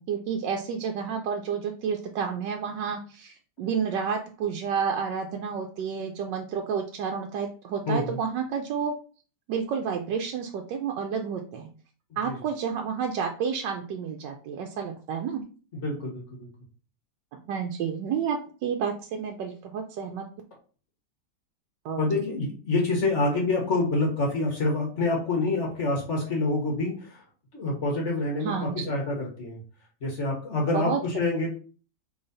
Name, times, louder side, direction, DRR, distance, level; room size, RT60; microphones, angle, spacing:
voice 1, 0.0-8.9 9.5-11.7 12.2-15.4 17.3-20.2 21.8-22.2 28.4-28.9 30.7-31.3, right 6 dB, 90° right, 2 dB, 1.3 m, -30 dB
voice 2, 7.9-8.2 12.2-12.4 15.7-16.5 22.0-27.2 27.5-29.6 30.0-31.5, left 2 dB, 45° left, -1 dB, 1.4 m, -27 dB
4.0 x 3.4 x 3.9 m, 0.39 s
omnidirectional pair, 1.9 m